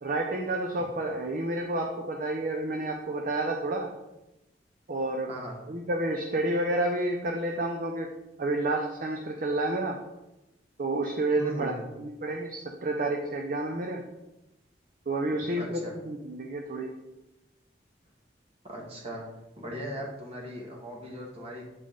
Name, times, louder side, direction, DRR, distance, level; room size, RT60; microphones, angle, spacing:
voice 1, 0.0-3.9 4.9-5.3 5.7-8.1 8.4-10.0 10.8-14.0 15.1-16.9, right 2 dB, 50° right, 2 dB, 0.5 m, -30 dB
voice 2, 11.4-11.9 15.5-16.0 18.6-19.3 19.6-21.6, equal, 35° right, -1 dB, 1.4 m, -38 dB
8.0 x 3.7 x 3.7 m, 0.97 s
head